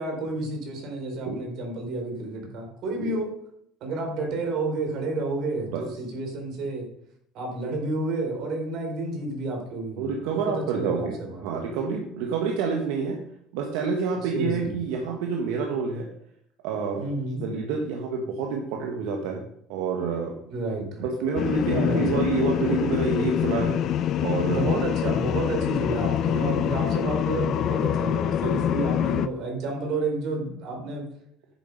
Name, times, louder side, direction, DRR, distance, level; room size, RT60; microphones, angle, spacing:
voice 1, 0.0-3.3 3.8-6.9 7.3-10.0 10.3-11.4 14.2-14.7 17.0-17.5 20.5-21.1 21.6-22.2 24.5-31.0, right 2 dB, 60° right, 2 dB, 3.9 m, -30 dB
voice 2, 10.0-13.2 13.5-16.1 16.6-17.1 17.4-19.4 19.7-20.3 21.0-23.8 24.2-24.8 26.4-26.5 28.4-28.5, right 5 dB, 85° right, 2 dB, 1.6 m, -28 dB
sound 1, 21.4-29.3, left 10 dB, 50° left, 0.6 m, -25 dB
10.0 x 7.4 x 5.3 m, 0.71 s
cardioid pair, 120°, 0 cm